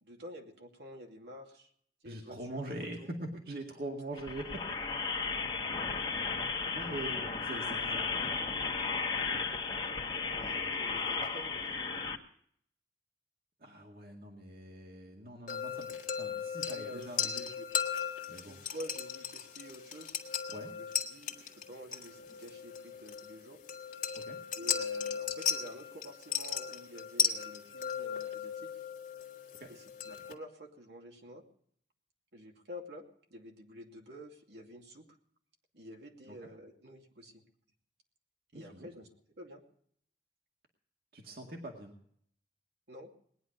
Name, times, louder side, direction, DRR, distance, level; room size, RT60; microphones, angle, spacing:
voice 1, 0.0-1.7 2.0-3.1 9.2-9.6 10.3-11.8 16.7-17.6 18.5-20.2 20.7-23.6 24.5-28.7 29.7-31.4 32.3-35.0 35.7-37.4 38.5-39.1 39.4-39.6 42.9-43.1, equal, 75° right, 1 dB, 2.5 m, -49 dB
voice 2, 2.0-4.8 6.7-8.1 13.6-15.9 16.2-17.5 18.3-18.6 20.5-20.7 24.1-24.4 29.6-29.7 36.3-36.4 38.5-38.9 41.1-42.0, right 1 dB, 55° right, 1 dB, 2.0 m, -43 dB
sound 1, 4.2-12.1, left 4 dB, 25° left, 1.3 m, -34 dB
sound 2, 15.5-30.3, left 7 dB, 50° left, 1.7 m, -37 dB
19.5 x 10.5 x 5.3 m, 0.65 s
head